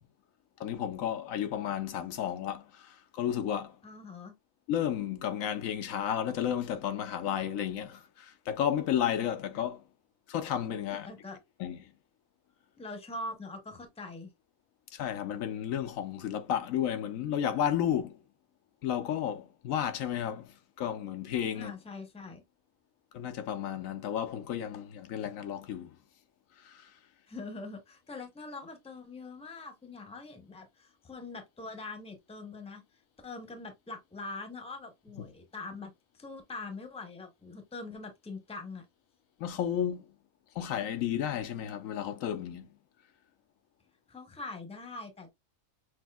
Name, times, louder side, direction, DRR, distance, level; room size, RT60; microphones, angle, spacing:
voice 1, 0.6-3.7 4.7-9.8 10.3-11.1 11.6-11.8 14.9-18.2 18.8-20.5 20.8-21.7 23.1-25.9 26.6-26.9 35.2-35.3 39.4-40.0 40.6-42.7, left 9 dB, 80° left, 1.1 m, -32 dB
voice 2, 3.8-4.3 11.1-11.4 12.8-14.3 21.5-22.4 27.3-32.8 33.2-38.8 44.1-45.3, left 3 dB, 5° left, 0.7 m, -43 dB
6.2 x 2.6 x 2.3 m
omnidirectional pair, 1.4 m